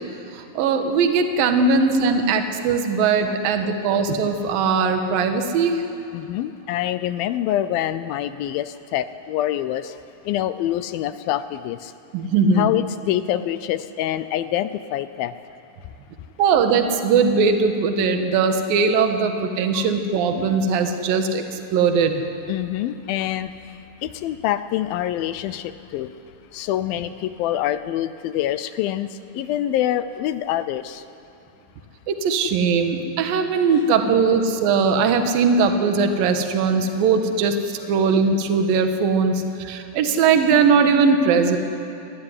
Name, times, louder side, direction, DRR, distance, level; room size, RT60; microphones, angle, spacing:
voice 1, 0.3-5.8 12.1-12.7 16.4-21.4 21.7-22.2 32.1-41.6, right 5 dB, 70° right, 6 dB, 3.1 m, -20 dB
voice 2, 6.1-9.9 10.3-11.9 12.6-15.3 19.7-19.9 22.5-23.5 24.0-26.1 26.5-29.1 29.3-31.0, left 12 dB, 80° left, 12 dB, 2.4 m, -25 dB
25.0 x 19.5 x 9.8 m, 2.8 s
omnidirectional pair, 4.5 m